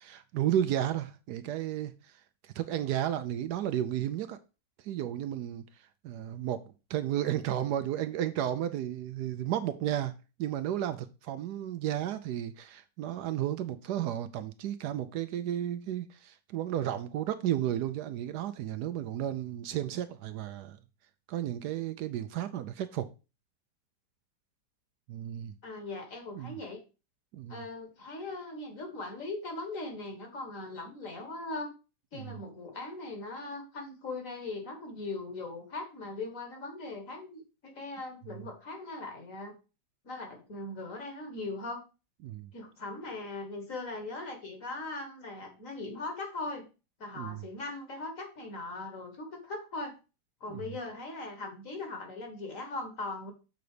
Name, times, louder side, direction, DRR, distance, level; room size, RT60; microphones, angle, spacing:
voice 1, 0.0-4.4 4.8-10.1 10.4-20.8 21.3-23.1 25.1-25.5 26.4-26.6 27.3-27.6 32.1-32.4 42.2-42.5 47.1-47.5 50.5-50.6, right 11 dB, 75° right, 1.1 m, -33 dB
voice 2, 25.6-26.8 27.5-31.7 32.1-39.6 40.0-41.8 42.5-46.7 47.0-50.0 50.4-53.3, left 2 dB, 50° left, 1.9 m, -40 dB
6.8 x 4.0 x 4.9 m
omnidirectional pair, 1.9 m